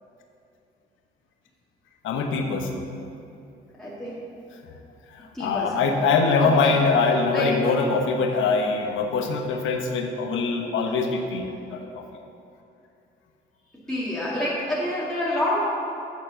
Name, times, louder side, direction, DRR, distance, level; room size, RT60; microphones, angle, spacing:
voice 1, 2.0-2.8 4.6-4.7 5.1-12.0, left 4 dB, 80° left, 3 dB, 0.9 m, -23 dB
voice 2, 3.8-4.2 5.3-5.8 6.4-6.7 7.3-7.5 13.9-15.6, left 1 dB, 5° left, -8 dB, 1.9 m, -27 dB
8.3 x 4.1 x 6.7 m, 2.6 s
cardioid pair, 75°, 20 cm